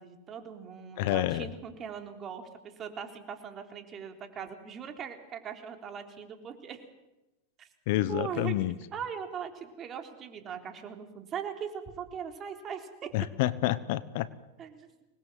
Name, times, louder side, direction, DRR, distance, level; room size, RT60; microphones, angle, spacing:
voice 1, 0.0-6.8 7.6-7.7 8.1-8.5 8.9-13.1 14.6-14.9, right 7 dB, 35° right, 5 dB, 3.9 m, -40 dB
voice 2, 1.0-1.5 7.9-8.7 13.1-14.3, left 15 dB, 60° left, 17 dB, 1.1 m, -28 dB
25.0 x 20.5 x 7.6 m, 1.0 s
hypercardioid pair, 105°, 0 cm